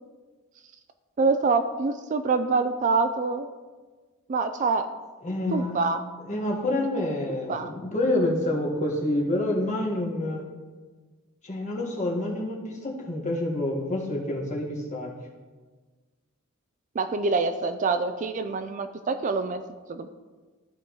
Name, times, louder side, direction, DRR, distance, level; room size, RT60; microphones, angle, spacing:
voice 1, 1.2-3.5 4.3-4.9 5.5-6.0 7.5-7.7 17.0-19.6 19.9-20.1, right 4 dB, 35° right, 9 dB, 0.3 m, -25 dB
voice 2, 5.2-5.8 6.2-10.5 11.4-15.1, left 1 dB, 35° left, -2 dB, 1.6 m, -28 dB
14.0 x 4.7 x 3.1 m, 1.4 s
head